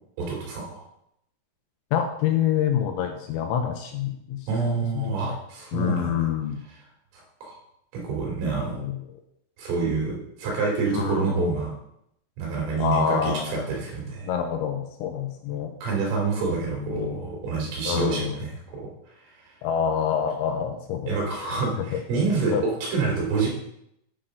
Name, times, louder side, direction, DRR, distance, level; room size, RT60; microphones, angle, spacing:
voice 1, 0.2-0.8 4.5-6.2 7.4-7.6 7.9-8.8 9.6-11.7 12.4-14.3 15.8-18.9 21.1-22.5 22.9-23.5, right 4 dB, 90° right, -2 dB, 5.4 m, -27 dB
voice 2, 1.9-4.4 4.7-5.3 5.7-6.6 8.7-9.0 10.9-11.4 12.8-13.8 14.2-15.7 16.6-17.2 17.9-18.4 19.6-21.1 21.4-22.0 22.5-22.6, left 8 dB, 85° left, 4 dB, 2.8 m, -27 dB
10.0 x 3.8 x 6.4 m, 0.77 s
omnidirectional pair, 5.7 m